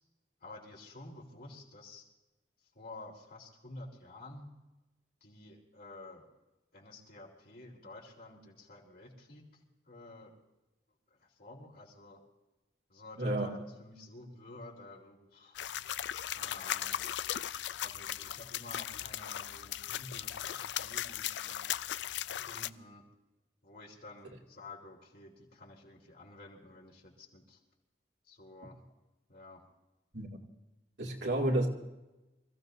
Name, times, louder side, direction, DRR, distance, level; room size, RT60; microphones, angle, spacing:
voice 1, 0.4-2.0 2.7-4.5 5.2-6.3 6.7-9.6 9.9-10.4 11.2-12.2 12.9-15.6 16.3-17.0 17.8-21.7 22.3-23.1 23.6-27.6 28.3-28.8 29.3-29.6, left 2 dB, 60° left, -2 dB, 3.9 m, -51 dB
voice 2, 13.2-13.6 30.1-30.4 31.0-31.7, right 1 dB, 80° right, -1 dB, 2.6 m, -31 dB
sound 1, 15.6-22.7, left 11 dB, 85° left, 0.4 m, -37 dB
26.5 x 15.5 x 2.7 m, 1.0 s
head